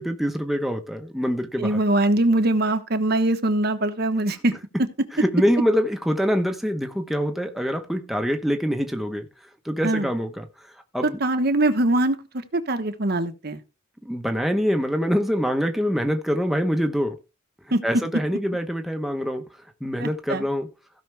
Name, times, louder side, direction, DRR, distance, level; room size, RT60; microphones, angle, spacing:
voice 1, 0.0-1.8 5.1-9.3 9.6-10.5 10.9-11.2 14.0-17.1 17.8-19.4 19.8-20.7, equal, ahead, 1.0 m, -24 dB
voice 2, 1.6-4.5 9.8-10.1 11.2-13.6 17.7-17.8 20.0-20.4, right 1 dB, 50° right, 1.2 m, -22 dB
16.0 x 6.0 x 3.4 m
head